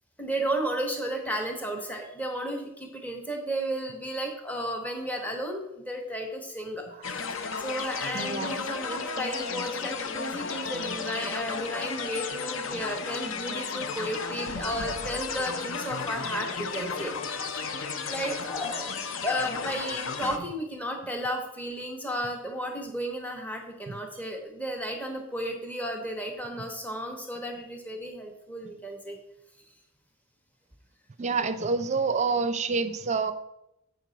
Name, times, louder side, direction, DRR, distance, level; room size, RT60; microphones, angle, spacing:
voice 1, 0.2-6.9 7.1-17.1 17.4-17.5 18.1-29.2, equal, 5° left, 2 dB, 0.9 m, -33 dB
sound 1, 7.0-20.4, left 5 dB, 60° left, 0.6 m, -33 dB
voice 2, 8.1-8.7 23.9-24.0 31.2-33.3, right 4 dB, 30° right, 11 dB, 0.5 m, -27 dB
7.5 x 6.2 x 3.9 m, 0.85 s
head